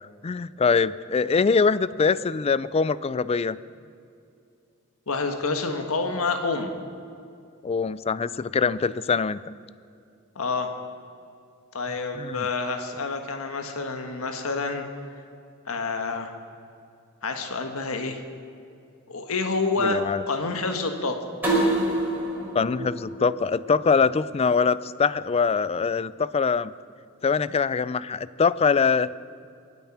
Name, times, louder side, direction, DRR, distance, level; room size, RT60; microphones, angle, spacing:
voice 1, 0.2-3.6 7.6-9.4 12.1-12.5 19.8-20.2 22.5-26.7 27.2-29.1, left 5 dB, 30° left, 17 dB, 0.3 m, -23 dB
voice 2, 5.1-6.7 10.3-10.7 11.7-14.8 15.7-16.3 17.2-18.2 19.1-20.0 20.3-21.2, left 3 dB, 85° left, 5 dB, 1.4 m, -28 dB
sound 1, 21.4-24.2, right 1 dB, 10° right, 4.9 m, -27 dB
23.5 x 9.0 x 5.9 m, 2.5 s
head